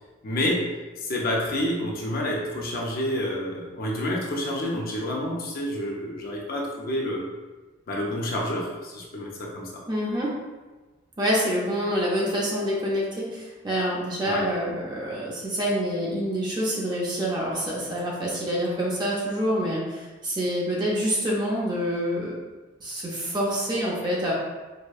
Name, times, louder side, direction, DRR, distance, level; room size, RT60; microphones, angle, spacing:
voice 1, 0.2-0.7 1.0-7.3 7.9-9.8 14.2-14.5, left 1 dB, 45° left, -2 dB, 0.5 m, -28 dB
voice 2, 9.9-10.3 11.2-22.3 22.8-24.3, equal, 20° right, -5 dB, 0.5 m, -27 dB
4.7 x 2.2 x 2.4 m, 1.2 s
head